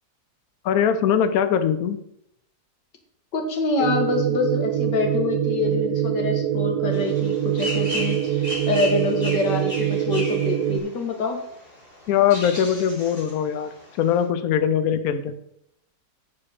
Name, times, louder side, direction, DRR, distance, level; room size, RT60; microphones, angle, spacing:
voice 1, 0.6-2.0 12.1-15.3, left 8 dB, 65° left, 9 dB, 1.0 m, -21 dB
voice 2, 3.3-11.4, left 3 dB, 85° left, 3 dB, 2.0 m, -26 dB
sound 1, 3.8-10.8, right 11 dB, 75° right, 1.1 m, -24 dB
sound 2, 6.9-14.2, left 1 dB, 35° left, 3.5 m, -36 dB
7.5 x 4.3 x 6.5 m, 0.74 s
omnidirectional pair, 1.9 m